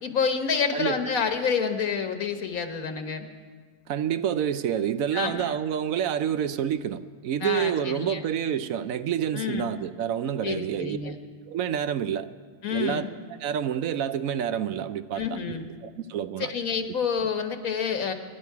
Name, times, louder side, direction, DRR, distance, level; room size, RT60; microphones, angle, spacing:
voice 1, 0.0-3.3 5.1-5.6 7.4-8.2 9.3-9.7 10.4-11.2 12.6-13.1 15.2-15.7 16.5-18.1, left 6 dB, 80° left, 7 dB, 1.6 m, -28 dB
voice 2, 3.9-11.1 11.5-12.3 12.7-13.1 13.4-16.5, right 9 dB, 75° right, 12 dB, 1.0 m, -28 dB
25.5 x 11.0 x 4.7 m, 1.5 s
omnidirectional pair, 1.5 m